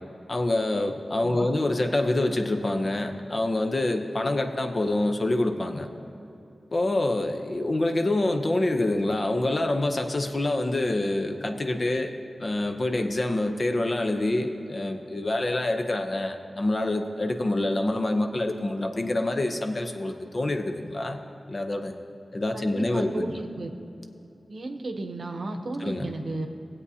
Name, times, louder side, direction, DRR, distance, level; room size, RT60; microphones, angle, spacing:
voice 1, 0.3-5.9 6.7-12.1 12.4-21.2 21.5-21.9 22.3-23.3 25.8-26.1, left 2 dB, 40° left, 5 dB, 0.7 m, -26 dB
voice 2, 1.2-1.5 22.5-23.7 24.5-26.5, right 2 dB, 60° right, 4 dB, 0.9 m, -34 dB
19.0 x 8.3 x 2.8 m, 2.9 s
wide cardioid pair, 110°, 0 cm